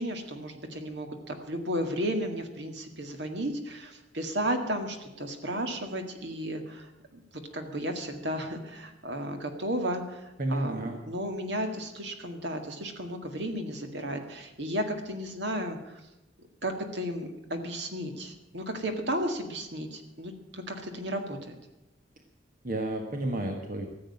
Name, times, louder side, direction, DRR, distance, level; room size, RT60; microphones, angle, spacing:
voice 1, 0.0-7.2 7.5-16.0 16.6-21.6, equal, 60° right, 5 dB, 1.9 m, -34 dB
voice 2, 10.4-11.0 22.6-23.9, right 1 dB, 45° right, 3 dB, 1.4 m, -31 dB
14.5 x 7.9 x 9.7 m, 0.97 s
head